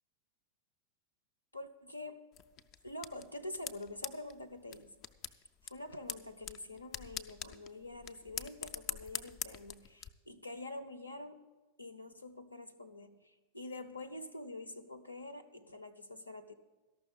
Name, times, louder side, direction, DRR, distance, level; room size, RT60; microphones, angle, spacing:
voice 1, 1.5-2.2 2.8-4.9 5.6-11.4 11.8-16.6, left 2 dB, 85° left, 11 dB, 0.7 m, -46 dB
sound 1, 2.3-10.1, left 9 dB, 35° left, 0.5 m, -45 dB
13.5 x 6.0 x 8.4 m, 1.3 s
figure-of-eight pair, 90°, 0 cm